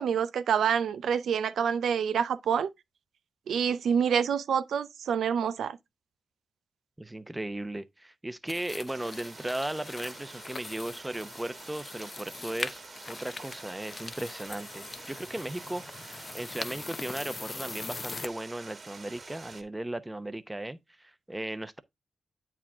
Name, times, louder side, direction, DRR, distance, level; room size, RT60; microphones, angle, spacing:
voice 1, 0.0-2.7 3.5-5.8, right 7 dB, 90° right, 0.6 m, -27 dB
voice 2, 7.0-12.8 13.1-21.8, right 1 dB, 10° right, 0.8 m, -37 dB
sound 1, 8.5-18.3, left 3 dB, 40° left, 0.7 m, -42 dB
Stream, 8.9-19.6, right 4 dB, 45° right, 1.7 m, -48 dB
8.7 x 5.0 x 3.5 m
cardioid pair, 80°, 0 cm